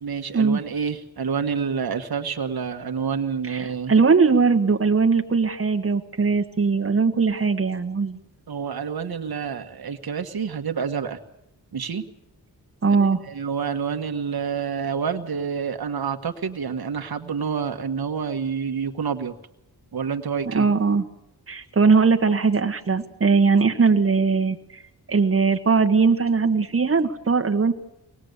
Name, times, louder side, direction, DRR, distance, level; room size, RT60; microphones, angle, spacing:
voice 1, 0.0-3.9 8.5-11.2 11.7-12.0 12.9-19.3 19.9-20.7, right 6 dB, 65° right, 6 dB, 1.6 m, -28 dB
voice 2, 3.5-8.2 12.8-13.2 20.5-21.0 21.5-24.8 25.1-27.7, right 4 dB, 35° right, 5 dB, 1.6 m, -20 dB
24.0 x 19.5 x 8.2 m, 0.83 s
wide cardioid pair, 100°, 39 cm